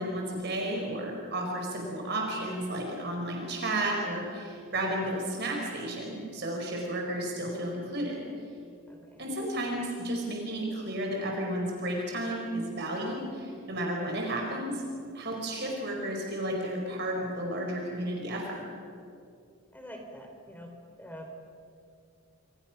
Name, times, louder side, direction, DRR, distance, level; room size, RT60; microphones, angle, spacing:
voice 1, 0.0-8.2 9.2-14.8 15.1-18.6, right 1 dB, 50° right, 0 dB, 4.7 m, -32 dB
voice 2, 8.9-9.3 19.7-21.3, equal, 10° left, 2 dB, 3.9 m, -46 dB
27.0 x 27.0 x 6.0 m, 2.4 s
head